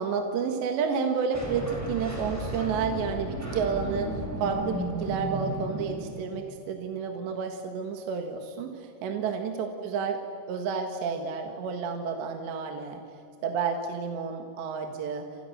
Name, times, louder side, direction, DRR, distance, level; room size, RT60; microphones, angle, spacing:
voice 1, 0.0-10.2 10.5-13.0 13.4-15.3, right 6 dB, 70° right, 5 dB, 3.6 m, -30 dB
sound 1, 1.3-6.5, right 1 dB, 5° right, 6.2 m, -34 dB
30.0 x 27.5 x 6.6 m, 2.4 s
omnidirectional pair, 5.6 m